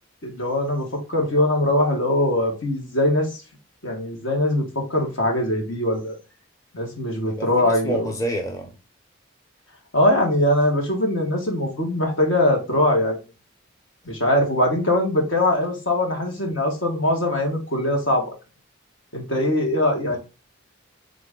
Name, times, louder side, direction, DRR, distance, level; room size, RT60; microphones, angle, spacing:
voice 1, 0.2-3.4 3.8-6.2 6.7-8.1 9.9-13.2 14.1-18.3 19.1-20.2, left 1 dB, 70° left, 1.8 m, -22 dB
voice 2, 7.2-8.7 20.1-20.2, right 1 dB, 15° left, 0.6 m, -29 dB
3.9 x 3.3 x 3.6 m
head